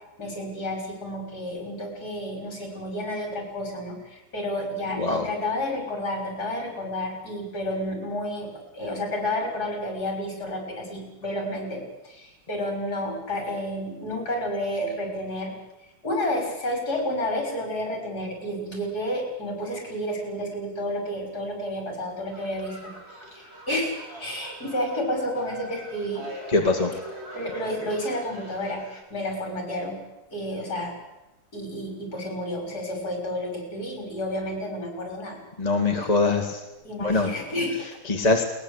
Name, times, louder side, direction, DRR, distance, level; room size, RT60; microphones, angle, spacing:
voice 1, 0.2-8.5 8.7-15.5 16.0-26.3 27.3-30.0 30.3-31.0 31.5-35.4 36.8-38.0, left 1 dB, 50° left, 3 dB, 6.8 m, -31 dB
voice 2, 5.0-5.3 26.5-26.9 35.6-36.6 37.0-37.3 37.8-38.4, left 3 dB, 20° left, 3 dB, 2.1 m, -23 dB
sound 1, 22.3-29.0, right 1 dB, 30° right, 4.6 m, -42 dB
21.5 x 20.0 x 8.3 m, 0.98 s
omnidirectional pair, 2.2 m